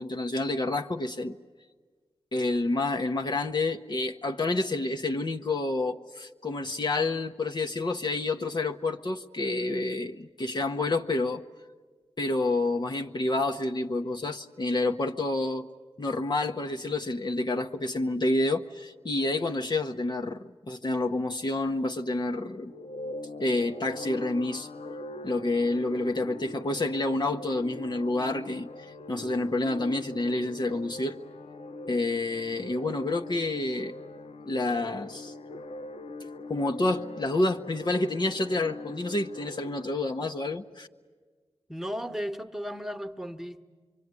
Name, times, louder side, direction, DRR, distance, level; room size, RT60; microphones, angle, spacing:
voice 1, 0.0-1.4 2.3-11.4 12.2-15.7 16.0-22.7 23.4-24.7 25.2-31.2 31.9-33.9 34.4-35.3 36.5-40.9, left 2 dB, 45° left, 0.9 m, -29 dB
sound 1, 22.7-39.8, left 2 dB, 80° left, 0.8 m, -42 dB
voice 2, 41.7-43.6, equal, 5° right, 1.3 m, -35 dB
25.0 x 24.0 x 9.7 m
cardioid pair, 55°, 11 cm